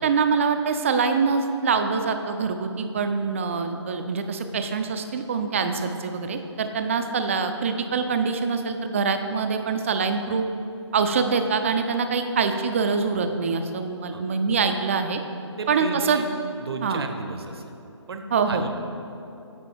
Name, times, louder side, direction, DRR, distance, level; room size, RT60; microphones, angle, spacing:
voice 1, 0.0-10.4 10.9-15.2 15.7-16.2 16.8-17.0 18.3-18.6, right 5 dB, 25° right, 7 dB, 0.3 m, -24 dB
voice 2, 15.6-16.3 16.6-17.7 18.1-18.7, right 4 dB, 55° right, 6 dB, 0.7 m, -34 dB
8.5 x 4.5 x 4.5 m, 2.8 s
figure-of-eight pair, 150°, 15 cm